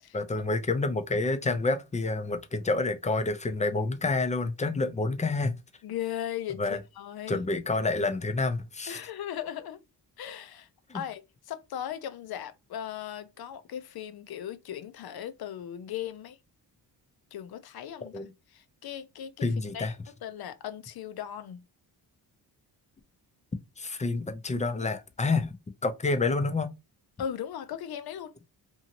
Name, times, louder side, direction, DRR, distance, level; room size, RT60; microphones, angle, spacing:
voice 1, 0.1-5.6 6.6-6.8 7.3-9.0 10.9-11.0 18.0-18.3 19.4-19.9 23.8-25.6 25.8-26.7, left 3 dB, 15° left, 0.5 m, -28 dB
voice 2, 5.8-7.4 8.9-9.8 10.2-16.4 17.3-21.6 27.2-28.3, left 10 dB, 60° left, 0.6 m, -38 dB
2.7 x 2.6 x 2.8 m
cardioid pair, 75°, 43 cm